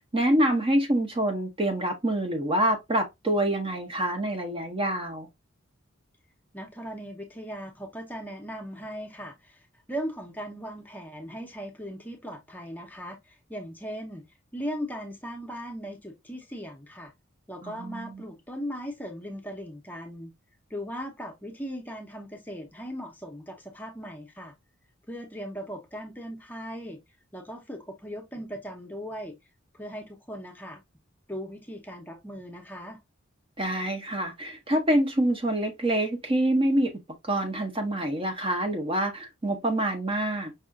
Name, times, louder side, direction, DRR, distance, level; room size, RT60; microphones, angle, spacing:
voice 1, 0.1-5.3 17.6-18.2 33.6-36.9 37.2-40.5, right 1 dB, 25° right, 0.6 m, -26 dB
voice 2, 6.5-14.2 14.5-17.1 17.5-20.3 20.7-24.5 25.1-27.0 27.3-29.4 29.7-30.8 31.3-33.0, equal, 10° left, 0.7 m, -38 dB
5.4 x 2.4 x 2.4 m
head